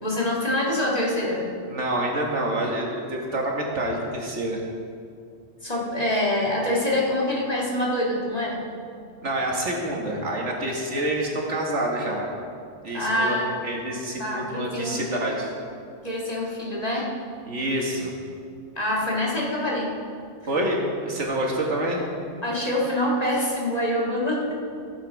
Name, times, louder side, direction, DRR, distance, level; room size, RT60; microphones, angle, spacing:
voice 1, 0.0-1.5 5.6-8.7 12.9-13.5 14.2-15.1 16.0-17.1 18.8-20.0 22.4-24.5, left 1 dB, 35° left, -4 dB, 2.0 m, -25 dB
voice 2, 1.7-4.6 9.2-12.3 12.8-13.4 13.6-15.5 17.5-18.1 20.5-22.0, right 1 dB, 75° right, -2 dB, 2.1 m, -27 dB
15.5 x 7.6 x 4.7 m, 2.3 s
omnidirectional pair, 1.2 m